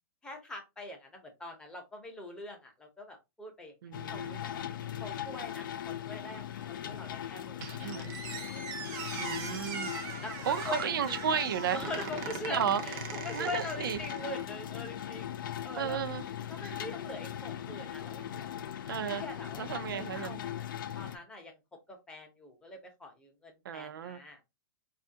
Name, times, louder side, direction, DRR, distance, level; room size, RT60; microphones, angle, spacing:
voice 1, 0.2-3.7 4.1-4.6 5.0-8.7 10.2-11.2 11.7-16.0 16.5-18.5 19.2-19.6 19.9-21.6 21.9-24.4, left 2 dB, 5° left, 0.7 m, -43 dB
voice 2, 3.8-4.5 7.8-8.2 9.1-9.9 10.5-11.8 12.5-12.8 13.3-14.0 15.7-16.2 18.9-19.2 19.6-20.4 23.6-24.2, right 9 dB, 90° right, 0.5 m, -33 dB
sound 1, 3.9-21.2, left 10 dB, 75° left, 0.5 m, -39 dB
Squeak, 7.6-14.5, right 6 dB, 30° right, 0.6 m, -41 dB
4.2 x 2.4 x 2.7 m
hypercardioid pair, 160°, 11 cm